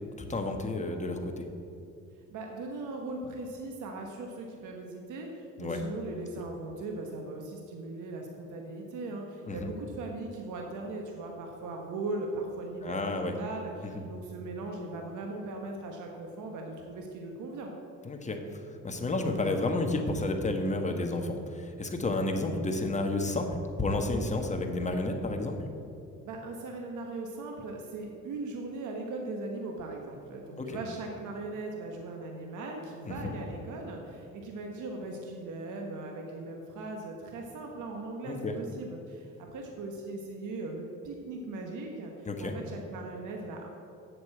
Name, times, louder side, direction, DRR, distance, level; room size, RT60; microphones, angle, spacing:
voice 1, 0.2-1.4 5.6-5.8 9.5-9.7 12.8-13.3 13.8-14.0 18.0-25.6 30.6-30.8 33.0-33.4 38.2-38.6 42.2-42.6, left 2 dB, 25° left, 4 dB, 1.4 m, -31 dB
voice 2, 2.3-17.7 26.2-43.7, right 2 dB, 80° right, 1 dB, 1.3 m, -39 dB
7.9 x 6.9 x 7.9 m, 2.6 s
cardioid pair, 90°, 30 cm